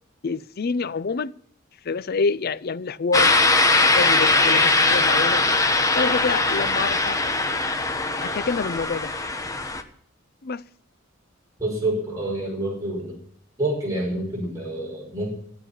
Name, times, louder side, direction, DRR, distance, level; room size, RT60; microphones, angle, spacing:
voice 1, 0.2-1.3 1.8-3.3 3.8-5.4 5.9-7.2 8.2-9.1 10.4-10.6, left 4 dB, 50° left, 0.5 m, -26 dB
sound 1, 3.1-9.8, left 3 dB, 15° left, 1.1 m, -20 dB
voice 2, 11.6-13.2 13.6-15.3, right 1 dB, 15° right, 5.5 m, -27 dB
15.5 x 8.6 x 7.1 m
head